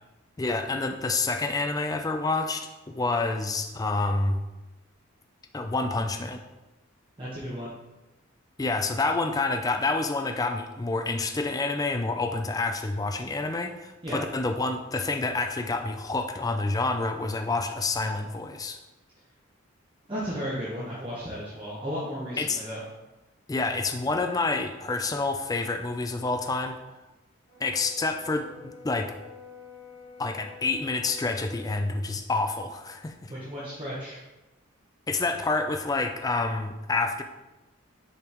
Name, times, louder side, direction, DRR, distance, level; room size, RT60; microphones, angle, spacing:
voice 1, 0.4-4.4 5.5-6.4 8.6-18.8 22.4-22.6 23.5-26.8 27.6-29.1 30.2-33.3 35.1-37.2, left 3 dB, 20° left, 6 dB, 0.3 m, -28 dB
voice 2, 7.2-7.7 14.0-14.2 20.1-22.8 33.3-34.2, equal, 25° right, -7 dB, 1.0 m, -34 dB
Brass instrument, 27.5-31.8, left 4 dB, 35° left, 1.5 m, -48 dB
6.9 x 5.2 x 3.0 m, 1.1 s
head